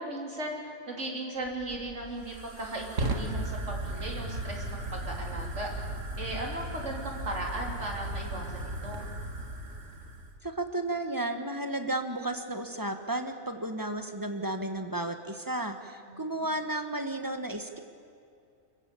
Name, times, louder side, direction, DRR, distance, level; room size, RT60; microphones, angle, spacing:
voice 1, 0.0-5.7 6.2-8.5 8.8-9.1 16.1-16.5, right 1 dB, 70° right, 0 dB, 4.0 m, -37 dB
Fire, 1.4-10.4, right 2 dB, 90° right, 2.1 m, -36 dB
voice 2, 10.4-17.8, right 1 dB, 15° right, 7 dB, 1.5 m, -33 dB
29.5 x 15.0 x 8.5 m, 2.4 s
omnidirectional pair, 1.3 m